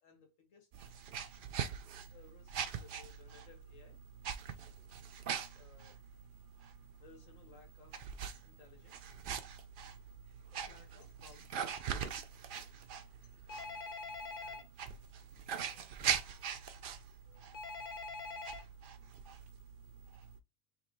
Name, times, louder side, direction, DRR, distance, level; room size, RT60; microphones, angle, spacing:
voice 1, 0.0-0.8 2.1-4.0 5.5-6.0 7.0-9.2 10.6-11.9 13.2-13.8 14.3-14.7 15.6-16.8 17.3-18.3, left 5 dB, 85° left, 1.7 m, -63 dB
sound 1, 0.7-20.4, right 7 dB, 60° right, 0.6 m, -43 dB
Telephone, 13.5-14.6 17.5-18.6, left 3 dB, 50° left, 0.6 m, -43 dB
3.2 x 3.0 x 4.4 m
omnidirectional pair, 1.3 m